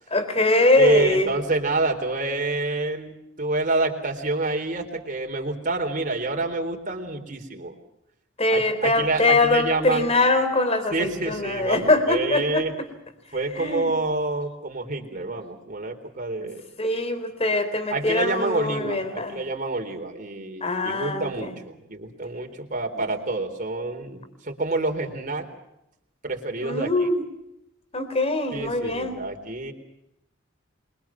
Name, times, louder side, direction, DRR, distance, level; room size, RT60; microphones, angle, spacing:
voice 1, 0.1-1.3 8.4-12.9 13.6-13.9 16.4-16.5 16.8-19.4 20.6-21.5 26.6-27.3 27.9-29.2, left 2 dB, 30° left, 9 dB, 4.0 m, -23 dB
voice 2, 0.8-7.7 8.5-10.1 10.9-12.7 13.3-16.6 17.9-25.5 26.2-26.9 28.5-29.7, right 2 dB, 45° right, 3 dB, 4.0 m, -27 dB
28.5 x 23.0 x 5.9 m, 0.85 s
head